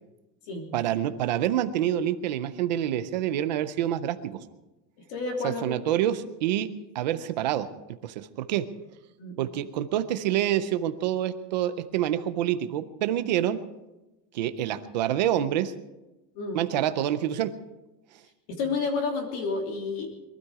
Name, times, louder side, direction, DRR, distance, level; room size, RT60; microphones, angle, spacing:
voice 1, 0.7-4.4 5.4-6.7 6.9-7.7 8.0-8.7 9.4-13.6 14.3-15.7 16.5-17.5, right 11 dB, 30° right, 11 dB, 0.4 m, -27 dB
voice 2, 5.1-5.7 9.2-9.4 16.3-16.6 18.5-20.1, left 4 dB, 40° left, 3 dB, 3.1 m, -30 dB
22.5 x 12.5 x 4.8 m, 1.0 s
supercardioid pair, 180°, 49 cm